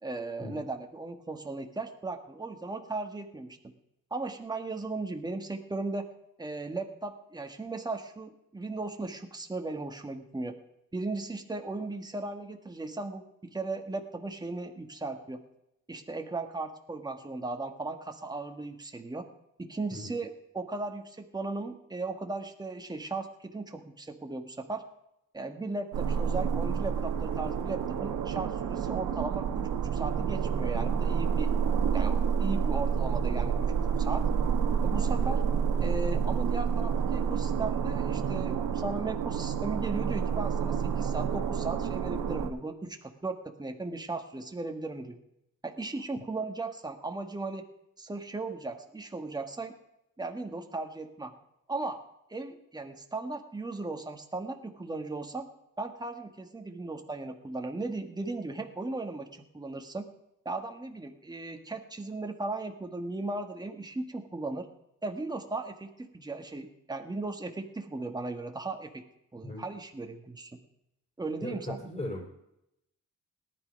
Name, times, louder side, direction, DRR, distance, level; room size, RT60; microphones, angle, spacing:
voice 1, 0.0-3.7 4.1-6.1 6.4-10.5 10.9-15.4 15.9-19.3 19.6-24.8 25.3-31.5 31.9-33.7 34.0-34.3 34.8-35.4 35.8-45.2 45.6-47.6 48.0-49.7 50.2-51.3 51.7-52.0 52.3-55.4 55.8-60.0 60.4-64.7 65.0-69.0 69.3-70.6 71.2-71.8, right 3 dB, 15° right, 4 dB, 1.6 m, -37 dB
sound 1, 25.9-42.5, right 7 dB, 85° right, 1.5 m, -29 dB
voice 2, 71.4-72.3, left 1 dB, 20° left, 0 dB, 3.7 m, -38 dB
18.0 x 11.0 x 5.3 m, 0.82 s
cardioid pair, 125°, 31 cm